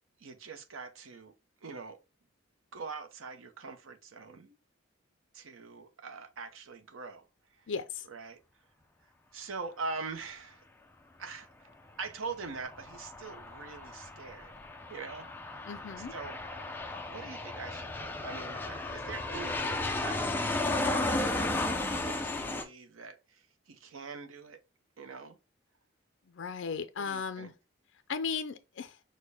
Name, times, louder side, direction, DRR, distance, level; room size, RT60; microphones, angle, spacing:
voice 1, 0.2-1.3 1.6-2.0 2.7-4.6 5.3-7.7 8.0-8.4 9.3-10.6 11.2-11.7 12.0-14.5 14.9-15.7 16.0-16.4 17.1-24.6 25.0-25.4 27.0-27.5, right 4 dB, 85° right, 0.7 m, -43 dB
voice 2, 7.7-8.0 15.7-16.1 26.4-27.5 28.1-28.9, left 5 dB, 70° left, 0.4 m, -36 dB
Aircraft, 12.4-22.6, left 2 dB, 10° left, 0.4 m, -34 dB
6.4 x 2.2 x 3.4 m
head